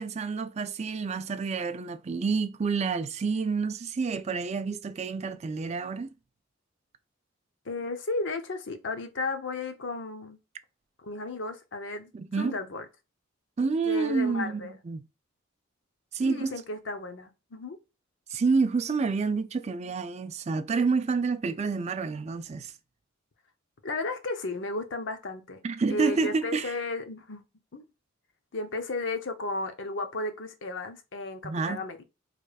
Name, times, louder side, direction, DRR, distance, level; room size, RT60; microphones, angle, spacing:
voice 1, 0.0-6.1 12.1-12.6 13.6-15.0 16.1-16.6 18.3-22.7 25.6-26.7 31.4-31.8, right 4 dB, 35° right, 0.4 m, -28 dB
voice 2, 7.6-10.4 11.0-12.1 12.4-12.8 13.8-14.7 16.2-17.8 23.8-25.6 25.9-27.4 27.7-27.9 28.5-32.0, left 2 dB, 65° left, 0.7 m, -34 dB
4.9 x 3.2 x 2.3 m
head